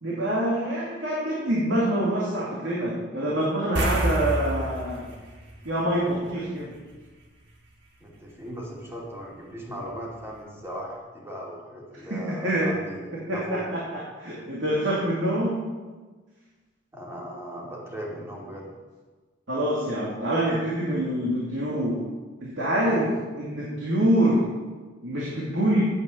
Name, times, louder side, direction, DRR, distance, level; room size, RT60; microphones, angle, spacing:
voice 1, 0.0-5.1 5.6-6.7 12.1-12.7 13.3-13.8 14.2-15.6 19.5-22.0 22.4-24.4 25.0-25.9, right 1 dB, 80° right, -5 dB, 2.5 m, -25 dB
sound 1, 3.8-6.5 6.8-7.0 9.9-10.0 10.3-10.4, right 1 dB, 65° right, 1.6 m, -29 dB
voice 2, 8.0-13.7 16.9-18.7, equal, 15° right, -3 dB, 2.5 m, -38 dB
9.2 x 8.3 x 6.9 m, 1.3 s
head